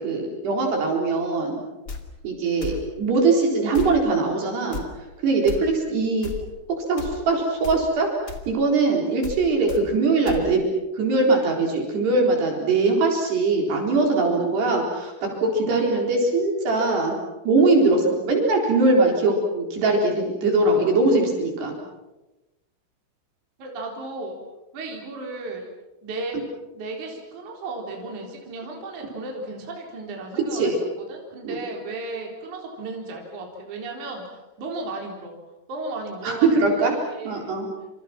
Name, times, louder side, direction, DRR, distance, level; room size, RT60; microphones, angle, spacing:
voice 1, 0.0-1.6 2.2-4.8 5.2-6.3 6.9-10.6 10.9-17.2 17.5-21.8 30.5-30.8 31.4-31.6 36.2-36.9 37.3-37.7, right 3 dB, 55° right, 1 dB, 6.0 m, -21 dB
sound 1, 1.9-2.0 2.6-2.8 3.7-4.0 4.7-4.9 5.5-5.6 6.2-6.4 7.0-7.2 7.6-7.8 8.3-8.4 9.2-9.4 9.7-9.8 10.3-10.4, left 4 dB, 35° left, 1.6 m, -33 dB
voice 2, 23.6-24.4 24.7-25.7 26.0-26.4 26.7-30.7 31.0-35.3 35.7-37.6, right 2 dB, 40° right, 0 dB, 5.0 m, -34 dB
28.5 x 27.5 x 6.0 m, 1.1 s
omnidirectional pair, 5.8 m